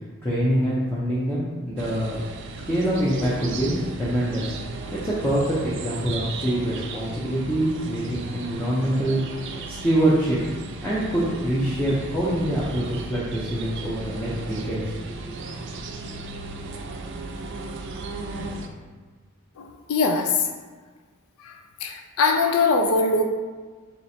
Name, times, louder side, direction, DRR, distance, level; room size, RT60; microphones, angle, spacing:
voice 1, 0.2-2.2 2.7-4.5 4.9-9.2 9.7-10.4 10.8-15.3, right 1 dB, 10° left, -9 dB, 0.6 m, -25 dB
sound 1, 1.8-18.7, right 3 dB, 55° right, 0.4 m, -36 dB
voice 2, 19.9-20.3 21.8-23.3, left 3 dB, 90° left, 4 dB, 0.4 m, -21 dB
3.2 x 3.0 x 4.1 m, 1.4 s
head